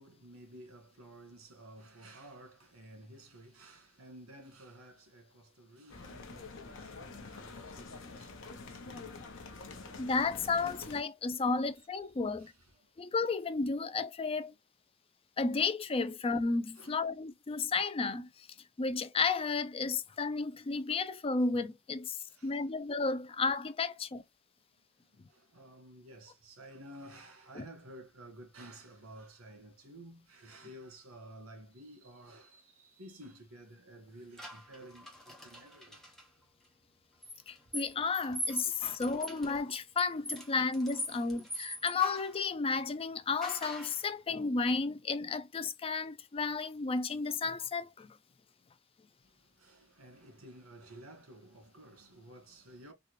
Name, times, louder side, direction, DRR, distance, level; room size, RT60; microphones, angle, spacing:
voice 1, 0.0-9.2 11.8-11.9 12.4-12.8 16.7-17.1 20.9-21.0 22.3-22.7 25.0-36.0 38.6-38.7 39.1-39.2 41.3-41.5 49.2-52.9, right 1 dB, 75° right, 1.6 m, -53 dB
sound 1, 5.9-11.0, left 3 dB, 65° left, 0.9 m, -47 dB
voice 2, 10.0-12.5 13.0-14.5 15.4-18.3 18.8-24.2 27.6-27.7 37.5-48.2, left 4 dB, 25° left, 0.4 m, -33 dB
sound 2, 34.4-36.2 37.2-42.4 43.4-44.0, equal, ahead, 1.1 m, -42 dB
3.9 x 2.4 x 3.1 m
head